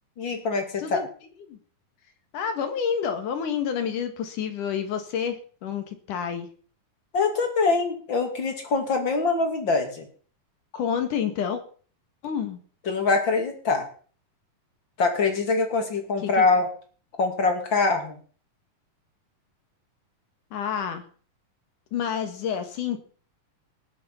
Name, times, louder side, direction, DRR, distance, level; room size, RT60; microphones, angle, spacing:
voice 1, 0.2-1.0 7.1-10.1 12.9-13.9 15.0-16.7 17.2-18.1, left 4 dB, 35° left, 4 dB, 3.0 m, -24 dB
voice 2, 2.3-6.5 10.7-11.6 12.2-12.6 16.2-16.5 20.5-21.0 21.9-23.0, left 7 dB, 70° left, 7 dB, 3.3 m, -29 dB
19.5 x 7.5 x 5.7 m, 0.43 s
omnidirectional pair, 3.9 m